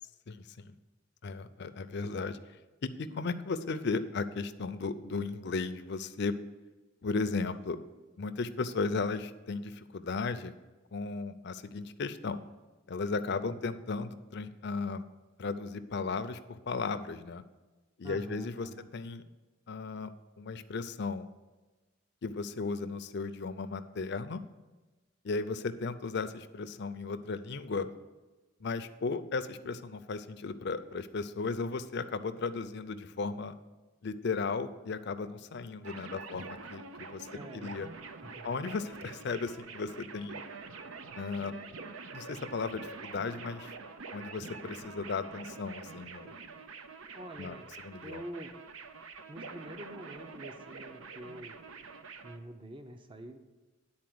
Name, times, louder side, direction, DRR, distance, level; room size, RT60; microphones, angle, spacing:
voice 1, 0.3-0.8 1.2-2.4 2.8-6.4 7.0-7.8 8.2-10.5 10.9-12.4 12.9-15.0 15.4-16.4 16.7-17.4 18.0-19.2 19.7-20.1 20.4-21.3 22.2-24.4 25.2-27.9 28.6-33.5 34.0-37.3 37.5-37.9 38.4-40.4 41.2-41.5 42.1-43.8 44.1-46.3 47.4-47.5 47.8-48.2, left 4 dB, 55° left, 11 dB, 0.5 m, -35 dB
voice 2, 18.0-18.9 37.3-37.8 38.2-38.5 47.1-47.7 48.0-48.5 49.3-51.6 52.2-53.4, right 1 dB, 25° right, 6 dB, 0.6 m, -46 dB
sound 1, 35.8-52.4, right 4 dB, 85° right, 0.7 m, -46 dB
10.5 x 4.3 x 7.7 m, 1.2 s
head